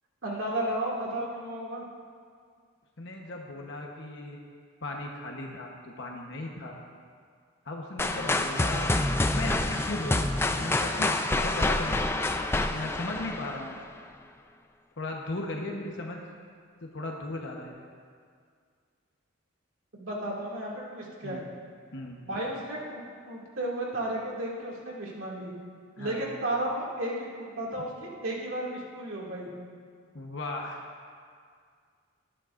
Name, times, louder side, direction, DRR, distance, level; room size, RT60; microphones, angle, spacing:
voice 1, 0.2-1.8 19.9-21.4 22.2-25.5 26.0-29.5, right 1 dB, 65° right, -4 dB, 2.4 m, -33 dB
voice 2, 3.0-4.4 4.8-6.8 7.7-8.9 9.3-11.9 12.6-13.8 15.0-16.2 16.8-17.7 21.2-21.4 21.9-22.2 26.0-26.3 30.1-30.8, left 2 dB, 55° left, 0 dB, 1.1 m, -37 dB
sound 1, 8.0-13.9, left 2 dB, 10° left, 0.3 m, -27 dB
19.0 x 11.0 x 2.6 m, 2.1 s
head